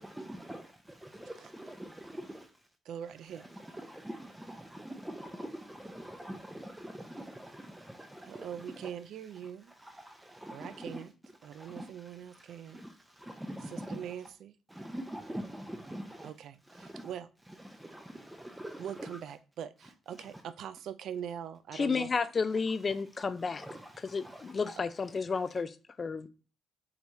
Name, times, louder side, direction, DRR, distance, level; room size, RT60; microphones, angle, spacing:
voice 1, 0.0-2.5 3.3-8.9 9.4-11.0 11.4-14.3 14.7-16.3 16.6-17.1 17.5-19.2 19.8-20.4 22.8-24.8, right 1 dB, 10° right, 0.6 m, -45 dB
voice 2, 2.9-3.5 8.3-9.7 10.5-11.1 11.4-12.8 13.7-14.5 16.2-17.3 18.8-22.1, right 9 dB, 70° right, 0.3 m, -42 dB
voice 3, 21.7-23.7 24.1-26.3, left 5 dB, 35° left, 0.4 m, -32 dB
4.6 x 3.4 x 2.6 m
cardioid pair, 90°, 0 cm